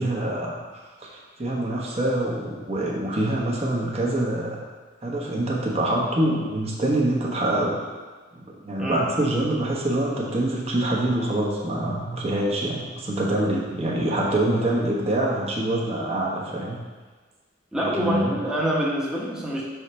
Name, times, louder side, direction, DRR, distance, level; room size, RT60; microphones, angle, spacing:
voice 1, 0.0-4.6 5.0-7.8 8.3-16.8 17.7-18.2, right 1 dB, 30° right, -3 dB, 1.0 m, -25 dB
voice 2, 17.7-19.6, right 1 dB, 5° right, -5 dB, 0.9 m, -26 dB
5.5 x 3.1 x 5.5 m, 1.4 s
head